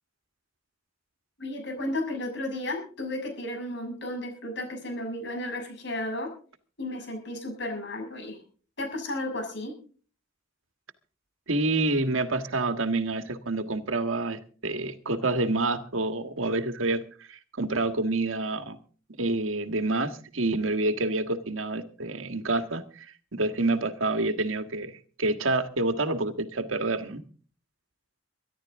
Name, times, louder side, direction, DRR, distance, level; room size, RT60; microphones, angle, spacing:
voice 1, 1.4-6.3 6.8-8.4 8.8-9.7, left 1 dB, 60° left, 4 dB, 6.7 m, -33 dB
voice 2, 11.5-17.0 17.3-18.8 19.2-27.2, right 2 dB, 90° right, 9 dB, 1.6 m, -28 dB
24.0 x 11.5 x 3.6 m, 0.41 s
head